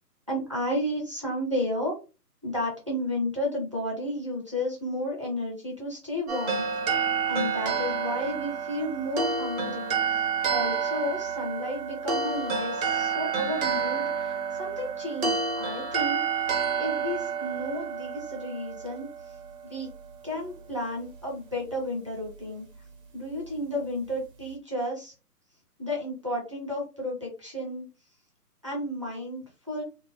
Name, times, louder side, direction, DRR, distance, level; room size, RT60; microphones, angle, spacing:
voice 1, 0.3-1.9 2.4-10.2 10.5-16.5 16.8-19.3 19.6-19.9 20.2-22.7 23.1-25.1 25.8-27.9 28.6-29.8, left 1 dB, 20° right, -3 dB, 0.5 m, -32 dB
sound 1, 6.3-19.5, right 5 dB, 60° right, 1.0 m, -29 dB
2.7 x 2.0 x 2.8 m, 0.32 s
figure-of-eight pair, 145°, 48 cm